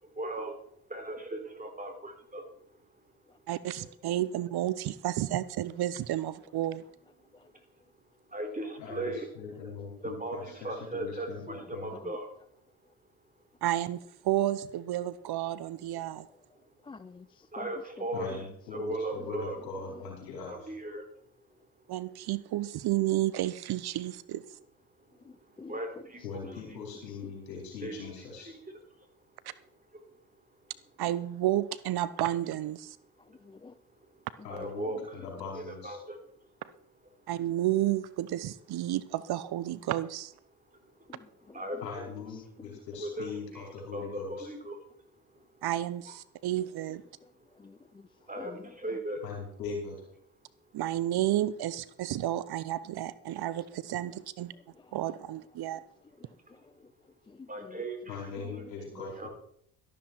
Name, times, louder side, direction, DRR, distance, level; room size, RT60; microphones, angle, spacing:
voice 1, 0.0-0.6 0.9-3.0 7.3-7.4 8.3-9.3 10.0-12.3 16.5-16.7 17.5-19.6 20.5-21.0 25.2-26.8 27.8-29.0 30.1-30.2 33.3-33.6 33.9-35.2 35.5-36.5 40.7-41.2 41.5-42.1 43.0-44.8 45.2-45.4 47.6-47.7 48.3-49.2 56.5-56.7 57.5-58.2 58.5-59.3, right 1 dB, 15° right, 4.0 m, -39 dB
voice 2, 3.5-6.8 13.6-16.3 21.9-24.4 31.0-33.0 37.3-40.3 45.6-47.0 50.7-54.5 54.9-55.8, right 13 dB, 50° right, 0.8 m, -31 dB
voice 3, 9.3-11.9 18.1-20.7 26.2-28.5 34.4-36.0 41.8-44.5 49.2-49.9 58.1-59.3, left 5 dB, 85° left, 4.9 m, -40 dB
voice 4, 16.8-18.3 19.9-20.0 25.2-25.8 26.4-26.6 27.1-27.3 33.3-33.7 41.1-41.8 42.4-42.7 47.6-48.1 48.4-48.7 56.2-56.9 57.3-57.8 58.4-58.6 58.9-59.0, left 4 dB, 10° left, 0.4 m, -49 dB
13.0 x 12.0 x 4.5 m
hypercardioid pair, 55°, 48 cm